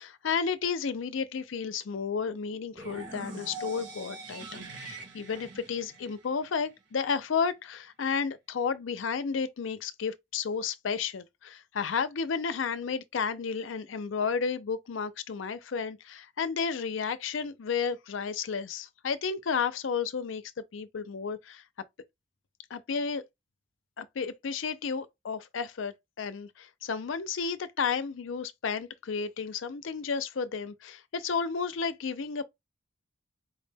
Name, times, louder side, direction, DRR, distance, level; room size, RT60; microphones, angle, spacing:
voice 1, 0.0-20.4 20.7-21.6 22.7-23.2 24.0-32.4, left 6 dB, 70° left, 0.5 m, -32 dB
sound 1, 2.7-6.7, right 3 dB, 65° right, 1.5 m, -43 dB
4.6 x 2.2 x 3.3 m
head